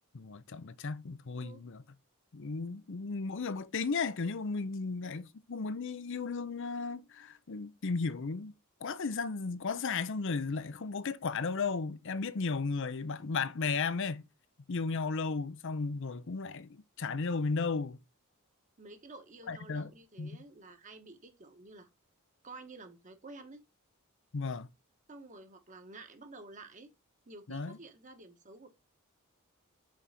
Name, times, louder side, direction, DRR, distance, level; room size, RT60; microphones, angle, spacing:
voice 1, 0.1-1.8 2.3-8.5 8.8-14.2 14.7-18.0 19.5-19.9 20.2-20.4 24.3-24.7 27.5-27.8, left 4 dB, 60° left, 0.6 m, -35 dB
voice 2, 18.8-21.9 22.4-23.6 25.1-26.9 27.3-28.7, right 3 dB, 35° right, 1.3 m, -51 dB
6.4 x 4.7 x 4.2 m
head